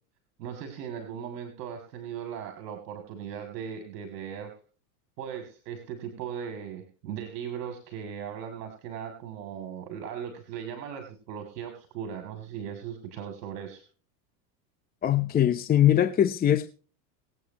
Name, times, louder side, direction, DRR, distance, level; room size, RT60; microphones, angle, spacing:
voice 1, 0.4-4.5 5.2-13.8, right 8 dB, 70° right, 3.0 m, -38 dB
voice 2, 15.0-16.7, left 11 dB, 20° left, 0.7 m, -22 dB
23.5 x 8.6 x 2.9 m
hypercardioid pair, 110°, 49 cm